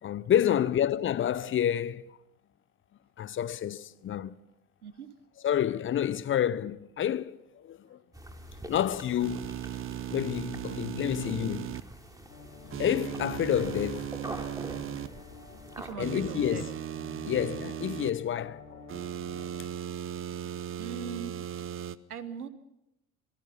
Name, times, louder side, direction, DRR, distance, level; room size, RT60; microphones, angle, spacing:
voice 1, 0.0-2.2 3.2-4.3 5.4-8.0 8.7-9.5 10.1-11.8 12.8-14.2 16.0-16.6 17.2-19.0, left 10 dB, 30° left, 0.7 m, -29 dB
sound 1, 8.1-15.9, right 1 dB, 10° right, 3.5 m, -45 dB
sound 2, 9.2-11.8 12.7-15.1 16.0-18.1 18.9-22.0, right 11 dB, 30° right, 0.8 m, -37 dB
sound 3, 12.3-19.7, left 5 dB, 90° left, 2.2 m, -49 dB
voice 2, 15.8-16.7 19.9-20.1 20.8-21.4 22.1-22.5, right 7 dB, 85° right, 1.3 m, -40 dB
26.0 x 19.0 x 5.6 m
figure-of-eight pair, 70°, 44 cm